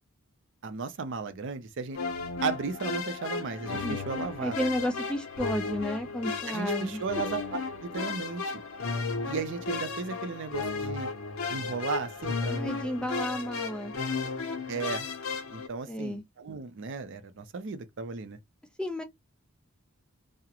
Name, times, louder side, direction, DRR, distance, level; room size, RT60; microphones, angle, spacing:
voice 1, 0.6-2.0 2.4-4.6 6.5-7.4 7.8-8.5 9.3-11.1 11.5-12.8 14.7-15.1 15.5-18.4, right 5 dB, 60° right, 0.5 m, -35 dB
sound 1, 1.9-15.7, left 4 dB, 75° left, 0.6 m, -34 dB
voice 2, 4.4-7.0 12.5-13.9 15.9-16.2 18.8-19.0, equal, 5° left, 0.3 m, -32 dB
2.4 x 2.1 x 2.8 m
head